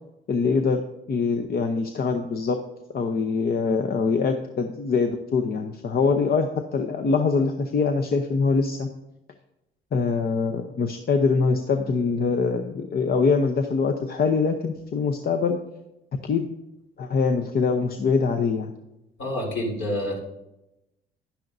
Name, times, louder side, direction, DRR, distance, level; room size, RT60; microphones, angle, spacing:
voice 1, 0.3-0.8 1.1-2.6 2.9-8.9 9.9-15.6 16.2-16.5 17.0-18.7, left 4 dB, 50° left, 5 dB, 0.8 m, -23 dB
voice 2, 19.2-20.2, left 1 dB, 70° left, -2 dB, 3.5 m, -28 dB
11.0 x 10.0 x 2.7 m, 0.92 s
cardioid pair, 90°, 20 cm